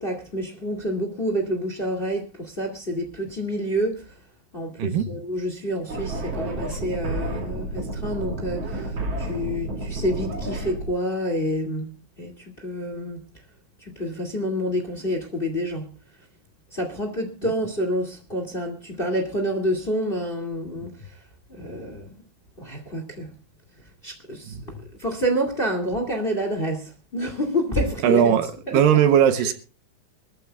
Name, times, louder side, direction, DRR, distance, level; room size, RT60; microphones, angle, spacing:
voice 1, 0.0-4.1 4.5-11.9 12.2-13.2 13.8-15.9 16.7-21.2 21.5-22.1 22.6-23.3 24.0-28.3 28.7-28.8 29.4-29.5, equal, 20° left, 1.8 m, -28 dB
sound 1, 5.9-10.9, right 2 dB, 45° right, 3.3 m, -30 dB
voice 2, 28.0-29.5, right 9 dB, 75° right, 2.5 m, -19 dB
24.0 x 14.0 x 2.4 m
omnidirectional pair, 4.2 m